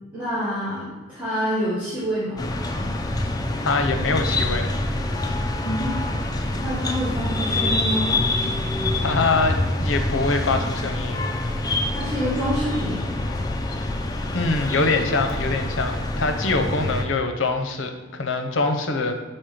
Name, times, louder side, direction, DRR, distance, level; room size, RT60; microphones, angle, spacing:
voice 1, 0.1-2.4 5.6-5.9 6.6-8.1 11.9-13.0, equal, 10° right, -10 dB, 1.5 m, -27 dB
sound 1, 2.4-17.0, left 1 dB, 20° left, 0.4 m, -26 dB
voice 2, 3.6-4.7 9.0-11.3 13.8-13.9 14.3-19.1, left 3 dB, 75° left, 6 dB, 0.7 m, -24 dB
6.1 x 4.3 x 5.0 m, 1.3 s
head